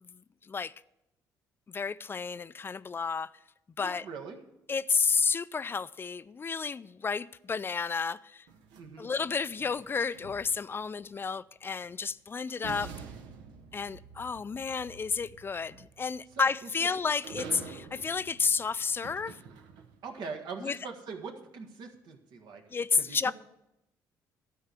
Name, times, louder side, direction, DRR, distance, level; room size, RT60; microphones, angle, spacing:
voice 1, 1.7-3.3 3.8-4.0 4.7-8.4 9.0-12.9 13.7-19.4 20.6-20.8 22.7-23.3, left 5 dB, 30° left, 0.4 m, -31 dB
voice 2, 3.8-4.4 8.8-9.1 16.3-16.9 20.0-22.6 22.9-23.3, right 5 dB, 70° right, 1.6 m, -42 dB
sound 1, 8.5-10.8 12.1-12.2 12.6-20.1, right 5 dB, 90° right, 1.0 m, -47 dB
12.0 x 4.7 x 8.2 m
supercardioid pair, 75°, 8 cm